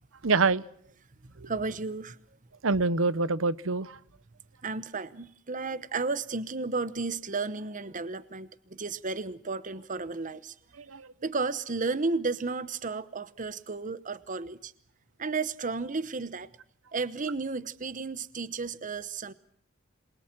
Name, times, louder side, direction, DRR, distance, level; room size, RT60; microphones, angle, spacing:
voice 1, 0.2-0.6 1.4-1.5 2.6-4.0 10.9-11.1, right 3 dB, 75° right, 0.9 m, -25 dB
voice 2, 1.5-2.2 4.6-8.5 8.8-10.5 11.2-14.7 15.2-16.5 16.9-19.3, right 4 dB, 40° right, 1.0 m, -33 dB
28.0 x 22.5 x 6.0 m
head